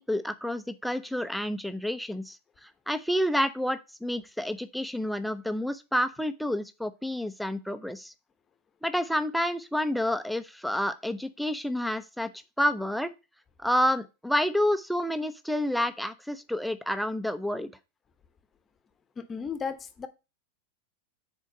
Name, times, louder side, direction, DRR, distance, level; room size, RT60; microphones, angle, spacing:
voice 1, 0.0-8.1 8.8-12.3 12.6-13.1 13.6-17.7, equal, ahead, 0.7 m, -29 dB
voice 2, 19.2-20.1, left 6 dB, 20° left, 1.0 m, -34 dB
6.4 x 4.5 x 6.4 m
figure-of-eight pair, 90°, 0 cm